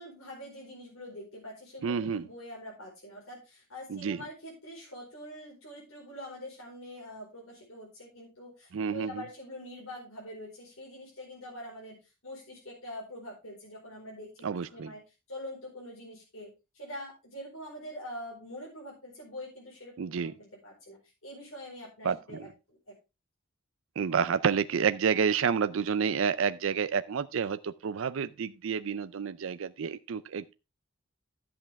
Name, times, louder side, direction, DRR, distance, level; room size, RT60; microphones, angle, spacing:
voice 1, 0.0-15.0 15.3-22.9, left 1 dB, 85° left, 4.7 m, -45 dB
voice 2, 1.8-2.3 3.9-4.2 8.7-9.2 14.4-14.9 20.0-20.3 22.0-22.5 24.0-30.5, right 6 dB, 70° right, 0.4 m, -29 dB
11.5 x 7.8 x 3.5 m
head